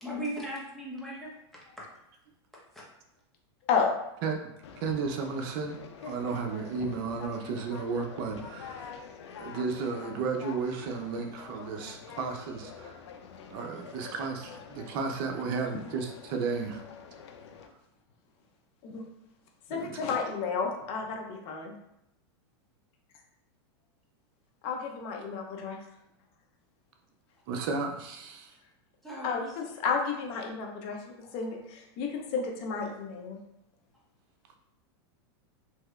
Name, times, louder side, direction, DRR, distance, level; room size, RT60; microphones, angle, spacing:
voice 1, 0.0-1.3 1.8-1.9 2.7-2.8 29.0-29.3, equal, ahead, -6 dB, 0.8 m, -37 dB
Conversation, 4.6-17.7, left 6 dB, 85° left, 0.4 m, -46 dB
voice 2, 4.8-8.8 9.4-13.0 13.5-16.8 19.7-20.1 27.5-28.5, right 4 dB, 55° right, 3 dB, 0.5 m, -33 dB
voice 3, 19.7-21.7 24.6-25.8 29.2-33.4, left 5 dB, 45° left, 1 dB, 0.7 m, -32 dB
3.1 x 2.8 x 2.4 m, 0.82 s
supercardioid pair, 130°, 14 cm